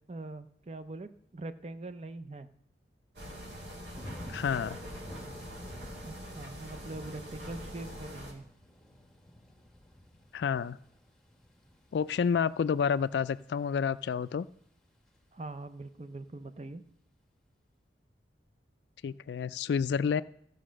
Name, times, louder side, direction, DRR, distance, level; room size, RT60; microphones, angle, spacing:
voice 1, 0.1-2.5 6.0-8.5 15.3-16.8, right 2 dB, 35° right, 11 dB, 0.5 m, -43 dB
sound 1, 3.2-8.3, equal, 70° right, 1.9 m, -44 dB
Thunder / Rain, 3.4-14.4 14.8-15.2, equal, 5° left, 1.1 m, -51 dB
voice 2, 4.3-4.8 10.3-10.8 11.9-14.5 19.0-20.2, left 6 dB, 70° left, 17 dB, 0.3 m, -29 dB
14.0 x 5.6 x 6.3 m, 0.72 s
head